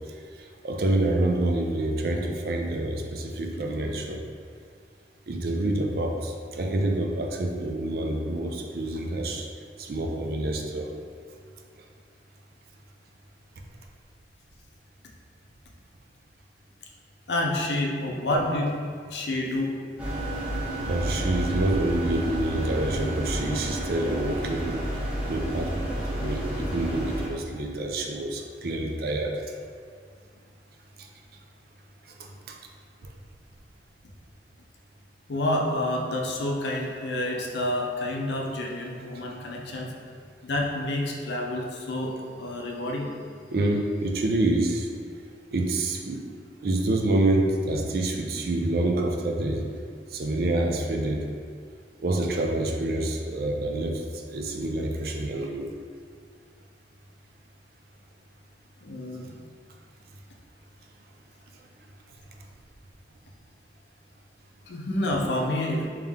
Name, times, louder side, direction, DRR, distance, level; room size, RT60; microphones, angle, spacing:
voice 1, 0.6-4.2 5.3-9.5 9.8-10.9 20.9-24.8 25.3-29.4 32.2-32.6 39.7-39.8 43.5-44.9 45.5-46.2 46.6-49.6 50.1-51.2 52.0-55.7, right 1 dB, 55° right, 2 dB, 0.4 m, -27 dB
voice 2, 17.3-18.8 19.1-19.7 35.3-39.9 40.4-43.1 58.8-59.3 64.7-65.9, left 1 dB, 75° left, 0 dB, 0.6 m, -28 dB
sound 1, 20.0-27.3, right 1 dB, 5° right, 0.6 m, -31 dB
3.5 x 3.0 x 3.5 m, 2.1 s
head